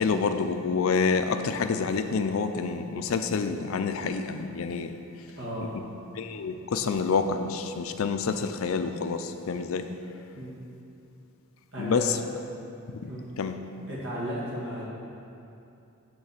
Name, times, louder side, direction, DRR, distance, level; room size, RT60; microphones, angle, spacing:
voice 1, 0.0-4.9 5.6-5.8 6.2-9.9 11.8-12.2 13.0-13.1 13.4-13.6, left 5 dB, 70° left, 8 dB, 0.4 m, -28 dB
voice 2, 5.4-5.7 10.3-10.5 11.7-12.2 13.1-13.2 13.9-14.9, equal, 55° right, -6 dB, 1.8 m, -34 dB
8.1 x 3.9 x 6.6 m, 2.7 s
head